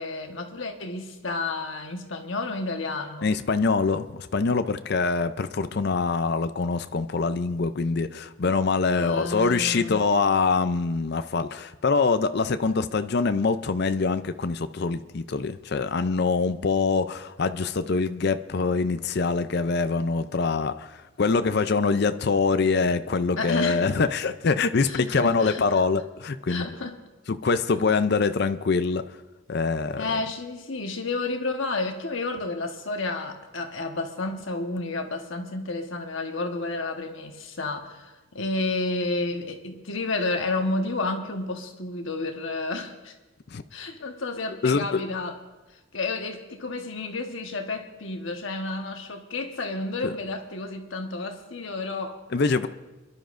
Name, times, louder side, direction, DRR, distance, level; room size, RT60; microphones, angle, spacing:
voice 1, 0.0-3.3 8.9-10.0 23.4-23.9 24.8-25.8 26.5-27.0 30.0-43.1 43.7-45.4 45.9-52.2, left 3 dB, 70° left, 4 dB, 1.2 m, -31 dB
voice 2, 3.2-26.7 27.3-29.0 29.5-30.2 43.5-43.6 44.6-45.0 50.0-50.1 52.3-52.7, left 4 dB, 50° left, 11 dB, 0.5 m, -24 dB
28.5 x 11.5 x 2.6 m, 1.2 s
head